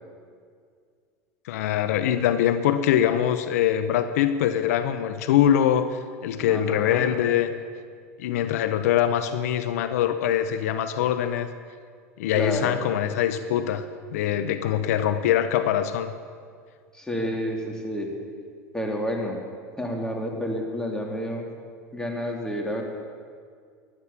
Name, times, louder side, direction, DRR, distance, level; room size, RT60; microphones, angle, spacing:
voice 1, 1.4-7.5 8.2-11.5 12.2-13.8 14.1-16.1, left 10 dB, 80° left, 11 dB, 0.8 m, -23 dB
voice 2, 6.4-7.1 12.3-12.8 16.9-18.1 18.7-19.4 19.8-21.5 21.9-22.8, equal, 10° left, 1 dB, 3.0 m, -30 dB
15.5 x 11.0 x 7.3 m, 2.1 s
supercardioid pair, 100°, 8 cm